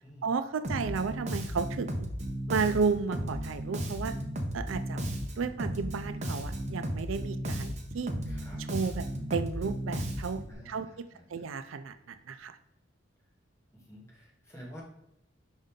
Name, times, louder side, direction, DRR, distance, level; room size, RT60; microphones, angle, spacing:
voice 1, 0.2-1.9 2.5-4.1 4.5-5.1 5.4-8.1 8.6-9.0 9.3-10.4 10.7-12.6, right 5 dB, 90° right, 10 dB, 0.4 m, -33 dB
Bass guitar, 0.6-10.5, equal, 35° right, 0.9 m, -34 dB
voice 2, 8.3-8.6 10.5-11.5 13.7-14.8, equal, 15° left, -5 dB, 1.9 m, -50 dB
5.3 x 5.3 x 3.7 m, 0.82 s
head